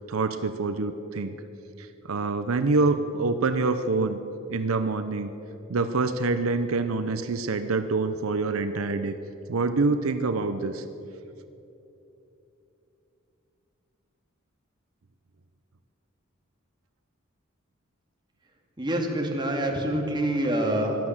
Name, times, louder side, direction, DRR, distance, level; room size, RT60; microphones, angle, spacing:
voice 1, 0.1-1.4 2.1-4.2 4.5-5.3 5.7-9.2 9.5-10.8, right 3 dB, 80° right, 10 dB, 0.7 m, -26 dB
voice 2, 18.8-21.1, right 1 dB, 20° right, 1 dB, 2.0 m, -26 dB
16.5 x 12.0 x 7.3 m, 3.0 s
head